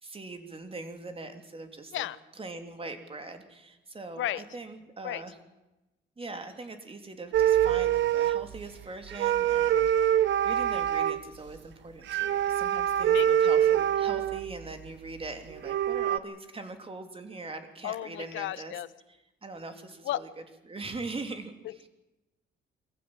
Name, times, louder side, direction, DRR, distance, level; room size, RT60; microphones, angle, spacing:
voice 1, 0.0-2.1 2.3-5.4 6.2-9.9 10.4-18.7 19.4-20.3 20.7-21.5 21.8-21.9, right 3 dB, 30° right, 6 dB, 3.3 m, -41 dB
sound 1, 7.3-8.6 9.1-11.2 12.1-14.5 15.2-15.3 15.5-16.2, right 10 dB, 70° right, 0.8 m, -25 dB
voice 2, 17.8-18.9 20.0-20.2 21.6-21.8, left 13 dB, 80° left, 17 dB, 0.9 m, -33 dB
24.0 x 15.0 x 9.0 m, 1.0 s
cardioid pair, 90°, 20 cm